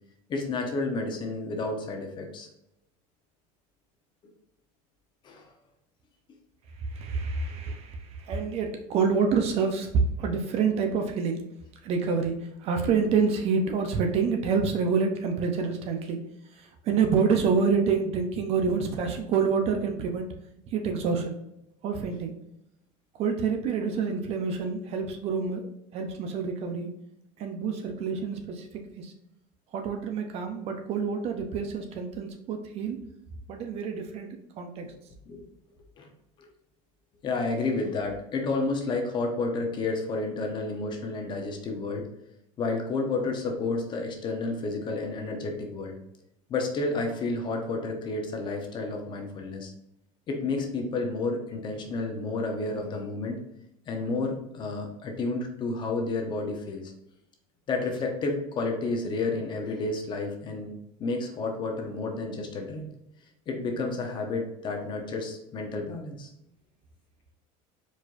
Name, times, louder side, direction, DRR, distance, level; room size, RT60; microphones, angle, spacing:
voice 1, 0.3-2.5 5.2-5.5 35.3-35.5 36.0-36.1 36.4-36.5 37.2-42.1 42.6-46.0 46.5-49.7 50.3-53.4 53.9-56.9 57.7-62.9 63.5-66.3, left 3 dB, 30° left, 2 dB, 0.9 m, -31 dB
voice 2, 6.8-9.9 10.2-11.4 11.8-16.2 16.5-20.3 20.7-21.4 21.8-22.3 23.2-26.9 27.4-29.1 29.7-33.0 33.5-34.9, right 5 dB, 40° right, 5 dB, 0.7 m, -27 dB
4.8 x 4.3 x 2.5 m, 0.83 s
cardioid pair, 160°, 17 cm